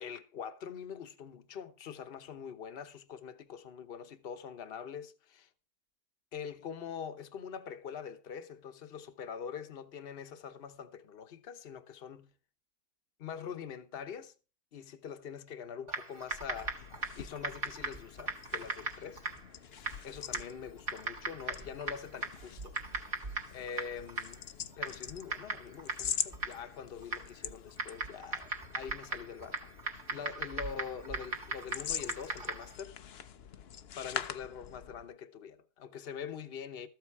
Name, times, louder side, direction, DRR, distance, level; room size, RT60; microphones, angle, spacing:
voice 1, 0.0-5.5 6.3-12.3 13.2-14.3 14.7-19.2 20.0-22.8 23.5-24.5 24.8-29.6 29.9-33.0 34.0-36.9, left 7 dB, 40° left, 1.0 m, -44 dB
Typing, 15.9-32.8, right 3 dB, 45° right, 2.0 m, -40 dB
sound 1, 16.2-35.1, left 8 dB, 60° left, 0.7 m, -44 dB
13.5 x 8.0 x 4.7 m
omnidirectional pair, 1.8 m